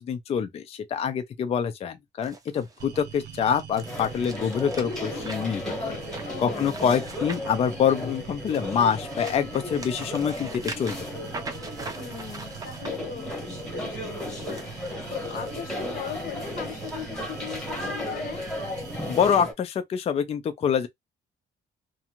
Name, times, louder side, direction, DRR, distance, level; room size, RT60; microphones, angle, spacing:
voice 1, 0.0-6.0 6.4-11.0 19.1-20.9, left 7 dB, 35° left, 0.4 m, -26 dB
sound 1, 2.2-8.4 8.8-12.9 14.1-15.5 16.0-16.2 16.9-17.0, right 3 dB, 20° right, 0.5 m, -42 dB
sound 2, 2.8-19.4, right 8 dB, 80° right, 0.5 m, -43 dB
sound 3, 3.8-19.5, left 1 dB, 5° left, 1.0 m, -35 dB
voice 2, 6.3-6.7 11.9-18.5, left 8 dB, 55° left, 0.8 m, -39 dB
2.5 x 2.2 x 2.8 m
cardioid pair, 160°, 18 cm